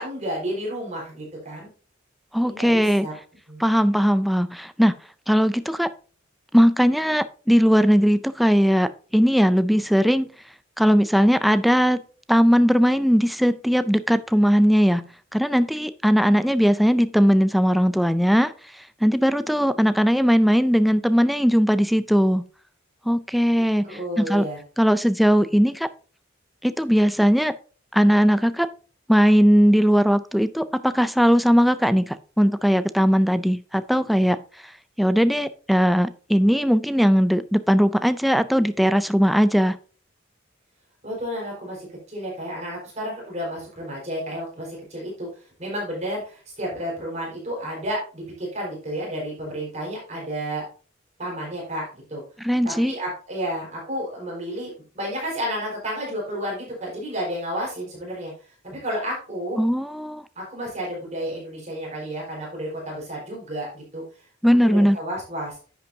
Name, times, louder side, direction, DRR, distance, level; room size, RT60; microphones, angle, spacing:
voice 1, 0.0-1.7 2.4-3.2 3.5-3.6 23.8-24.6 41.0-45.3 45.6-50.6 51.2-52.2 52.6-58.3 58.6-59.6 60.4-64.0 64.6-65.5, equal, 35° right, -3 dB, 4.4 m, -31 dB
voice 2, 2.3-3.1 3.6-4.9 5.3-5.9 6.5-10.3 10.8-12.0 12.3-15.1 15.3-22.4 23.1-24.5 24.8-25.9 26.6-27.5 27.9-28.7 29.1-34.4 35.0-39.8 52.4-52.9 59.6-60.2 64.4-65.0, equal, ahead, 12 dB, 0.3 m, -19 dB
10.5 x 8.1 x 2.7 m, 0.38 s
head